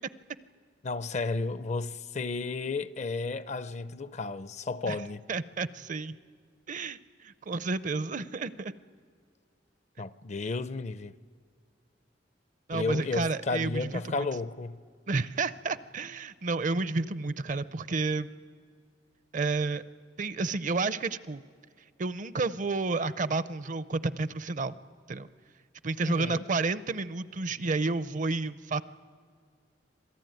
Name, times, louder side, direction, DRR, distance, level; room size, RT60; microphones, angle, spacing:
voice 1, 0.8-5.2 10.0-11.1 12.7-14.8 26.0-26.4, left 3 dB, 40° left, 0.5 m, -33 dB
voice 2, 5.3-6.2 6.7-7.0 7.2-8.8 12.7-14.3 15.1-18.3 19.3-19.8 20.2-21.4 22.0-24.8 25.1-25.3 25.8-28.8, right 3 dB, 45° right, 0.6 m, -31 dB
26.5 x 17.5 x 9.2 m
head